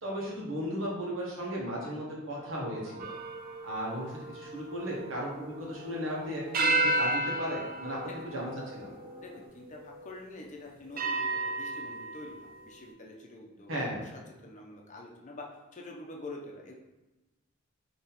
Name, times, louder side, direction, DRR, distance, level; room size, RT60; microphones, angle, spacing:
voice 1, 0.0-3.1 3.6-8.0 8.2-8.9 13.7-14.0, equal, 80° right, -4 dB, 1.3 m, -35 dB
sound 1, 2.3-9.5, right 2 dB, 25° right, 1.0 m, -50 dB
sound 2, 3.0-6.0 6.5-9.3 10.0-10.1 11.0-12.5, right 2 dB, 45° right, 0.5 m, -32 dB
voice 2, 9.2-14.1 14.4-16.7, left 2 dB, 40° left, -1 dB, 0.7 m, -46 dB
4.2 x 3.0 x 4.1 m, 1.1 s
head